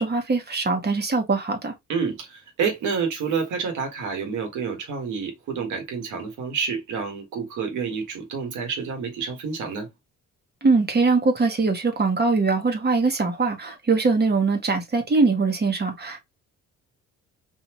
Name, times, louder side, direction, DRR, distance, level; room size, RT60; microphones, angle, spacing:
voice 1, 0.0-1.7 10.6-16.2, right 4 dB, 35° right, 1.2 m, -22 dB
voice 2, 1.9-9.9, right 5 dB, 80° right, 1.7 m, -28 dB
4.1 x 2.7 x 3.0 m
cardioid pair, 90°, 30 cm